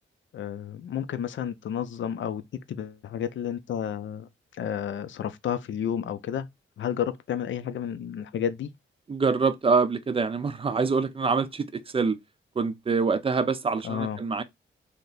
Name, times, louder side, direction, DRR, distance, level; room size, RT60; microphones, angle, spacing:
voice 1, 0.3-2.4 2.7-6.5 6.8-8.7 13.8-14.2, left 9 dB, 65° left, 0.5 m, -31 dB
voice 2, 9.1-12.2 12.6-14.4, right 4 dB, 25° right, 0.5 m, -25 dB
3.3 x 2.8 x 4.0 m
wide cardioid pair, 125°, 21 cm